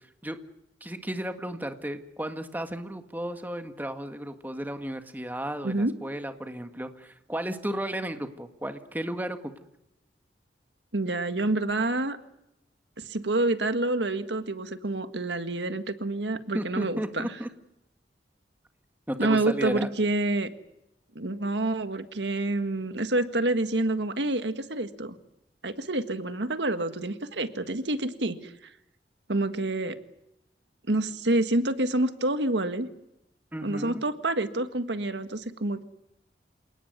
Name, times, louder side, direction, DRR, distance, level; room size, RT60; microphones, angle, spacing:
voice 1, 0.8-9.5 16.5-17.5 19.1-19.9 33.5-34.0, right 1 dB, 10° right, 7 dB, 1.7 m, -34 dB
voice 2, 10.9-12.2 13.0-17.3 19.2-20.5 21.1-25.2 25.6-28.5 29.3-30.0 30.9-32.9 33.6-35.8, right 2 dB, 90° right, 10 dB, 1.7 m, -28 dB
28.0 x 18.5 x 9.4 m, 0.85 s
head